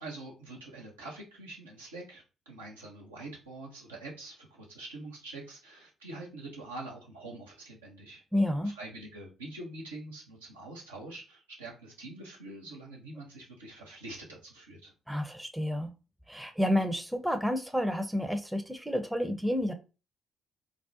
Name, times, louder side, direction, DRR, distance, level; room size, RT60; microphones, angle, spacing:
voice 1, 0.0-8.2 8.6-14.9, right 2 dB, 90° right, -2 dB, 0.6 m, -45 dB
voice 2, 8.3-8.7 15.1-15.9 16.3-19.7, left 1 dB, 5° right, 6 dB, 0.5 m, -30 dB
2.4 x 2.0 x 2.6 m, 0.31 s
hypercardioid pair, 45°, 0 cm